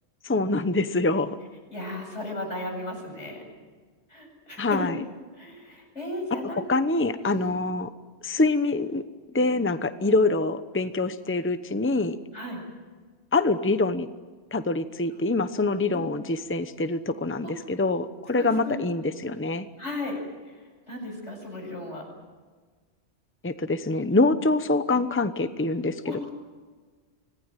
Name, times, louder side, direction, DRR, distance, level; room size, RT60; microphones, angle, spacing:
voice 1, 0.2-1.4 4.6-5.0 6.4-7.9 8.2-9.0 9.3-12.2 13.3-14.1 14.5-19.7 23.4-26.3, left 2 dB, 10° left, 11 dB, 0.9 m, -25 dB
voice 2, 1.7-3.4 4.1-5.0 5.4-6.7 7.2-7.4 12.3-12.6 15.8-16.1 17.4-17.5 18.3-18.8 19.8-20.2 20.5-20.6 20.9-22.1 26.1-26.3, left 1 dB, 90° left, 1 dB, 8.4 m, -35 dB
26.0 x 18.5 x 9.1 m, 1.4 s
omnidirectional pair, 1.2 m